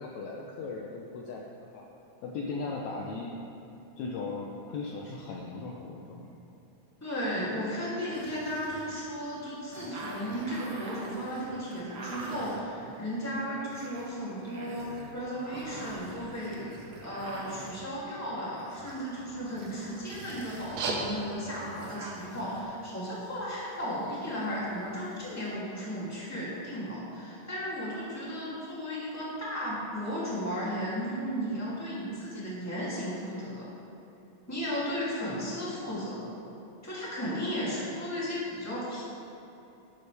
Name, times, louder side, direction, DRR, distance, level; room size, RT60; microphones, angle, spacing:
voice 1, 0.0-1.4 1.7-1.8 2.2-3.3 4.0-6.3, left 3 dB, 70° left, -1 dB, 1.9 m, -37 dB
voice 2, 7.0-16.7 17.0-33.7 34.5-36.3 36.8-39.0, equal, 5° left, -8 dB, 2.2 m, -35 dB
sound 1, 8.1-22.6, right 2 dB, 65° right, 1.0 m, -45 dB
sound 2, 20.6-25.5, right 3 dB, 85° right, 2.8 m, -40 dB
11.5 x 11.5 x 3.4 m, 2.9 s
omnidirectional pair, 3.8 m